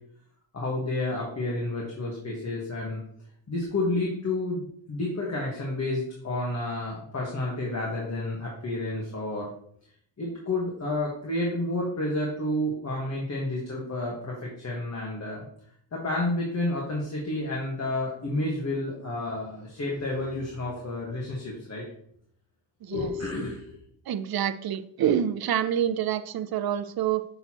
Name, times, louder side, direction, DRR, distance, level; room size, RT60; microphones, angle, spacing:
voice 1, 0.5-3.0 3.5-9.5 10.2-15.5 15.9-21.8 22.9-23.7, left 2 dB, 35° left, -3 dB, 1.5 m, -30 dB
voice 2, 22.8-23.1 24.1-27.3, right 10 dB, 55° right, 11 dB, 0.5 m, -27 dB
6.6 x 6.3 x 2.9 m, 0.66 s
wide cardioid pair, 125°, 44 cm